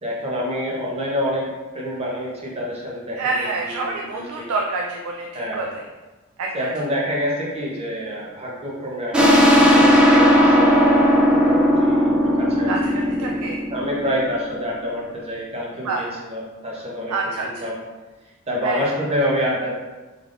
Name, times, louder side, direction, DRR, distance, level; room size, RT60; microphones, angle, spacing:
voice 1, 0.0-4.5 5.3-5.7 6.5-12.7 13.2-13.3 13.7-17.8 18.5-19.7, equal, 30° right, -4 dB, 0.8 m, -27 dB
voice 2, 3.2-5.8 6.4-6.5 12.7-13.6 15.8-16.0 17.1-17.7 18.6-18.8, right 3 dB, 80° right, 0 dB, 0.4 m, -27 dB
sound 1, 9.1-14.5, equal, 5° right, 0.3 m, -16 dB
3.5 x 3.3 x 2.5 m, 1.2 s
head